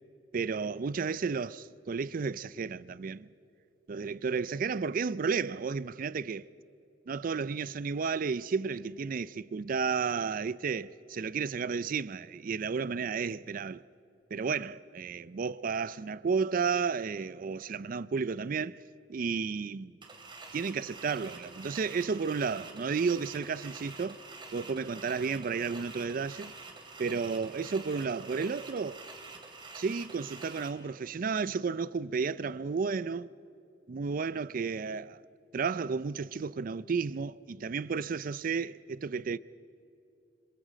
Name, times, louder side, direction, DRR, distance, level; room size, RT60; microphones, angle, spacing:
voice 1, 0.3-3.3 3.9-6.5 7.1-13.8 14.3-18.8 19.1-19.9 20.5-24.2 24.5-26.5 27.0-29.0 29.7-33.3 33.9-35.2 35.5-39.4, right 5 dB, 50° right, 0.4 m, -32 dB
sound 1, 20.0-30.7, right 3 dB, 25° right, 2.7 m, -47 dB
27.0 x 26.0 x 5.1 m
head